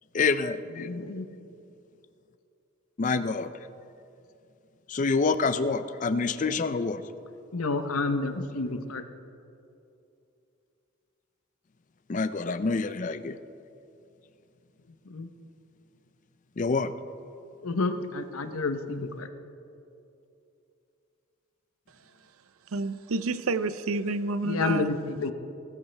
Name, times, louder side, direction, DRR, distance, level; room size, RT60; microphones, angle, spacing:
voice 1, 0.1-0.9 3.0-3.5 4.9-7.0 12.1-13.4 16.6-16.9, left 4 dB, 35° left, 12 dB, 0.4 m, -27 dB
voice 2, 0.8-1.3 7.5-9.0 15.1-15.3 17.6-19.3 24.4-25.3, left 3 dB, 90° left, 9 dB, 0.9 m, -29 dB
voice 3, 22.7-24.9, right 3 dB, 85° right, 13 dB, 0.6 m, -29 dB
19.0 x 13.5 x 3.4 m, 2.7 s
head